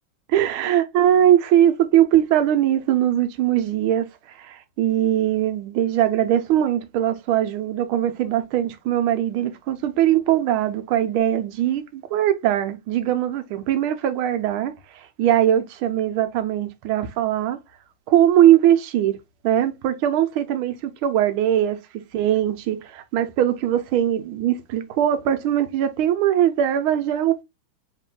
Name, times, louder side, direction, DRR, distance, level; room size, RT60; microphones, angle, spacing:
voice 1, 0.3-17.6 18.1-19.2 19.4-21.8 22.1-27.4, right 11 dB, 80° right, 1.6 m, -21 dB
3.4 x 3.1 x 3.7 m
omnidirectional pair, 2.3 m